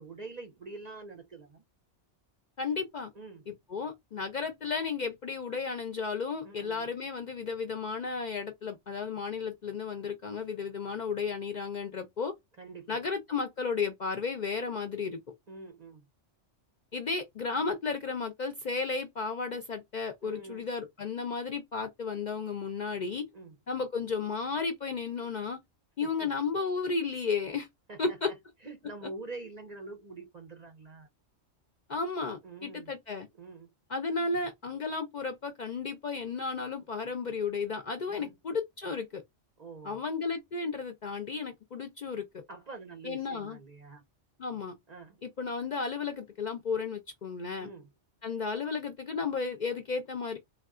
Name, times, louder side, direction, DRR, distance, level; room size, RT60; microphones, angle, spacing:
voice 1, 0.0-1.6 3.1-3.5 6.4-6.9 12.6-13.1 15.5-16.0 20.2-20.7 23.3-23.5 26.0-26.3 27.9-28.2 28.6-31.1 32.4-32.9 33.4-33.7 38.1-38.3 39.6-40.0 42.5-44.0 44.9-45.2 47.6-47.9, right 3 dB, 50° right, 0.5 m, -46 dB
voice 2, 2.6-3.1 3.5-12.3 12.9-15.2 16.9-23.2 23.7-25.6 26.0-27.7 28.0-28.3 31.9-33.3 33.9-39.2 39.8-42.4 43.0-43.6 44.4-44.7 45.2-47.7 48.2-50.4, left 4 dB, 55° left, 0.5 m, -33 dB
3.5 x 2.3 x 2.3 m
omnidirectional pair, 1.2 m